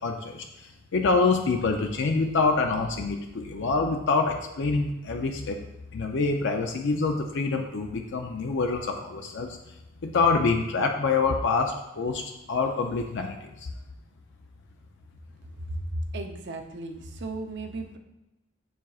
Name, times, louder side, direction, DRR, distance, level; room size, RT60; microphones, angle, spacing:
voice 1, 0.0-5.6 5.9-9.7 10.0-13.7, left 4 dB, 60° left, 3 dB, 0.5 m, -26 dB
voice 2, 16.1-18.0, right 2 dB, 55° right, 5 dB, 0.6 m, -36 dB
7.1 x 6.0 x 2.4 m, 0.96 s
head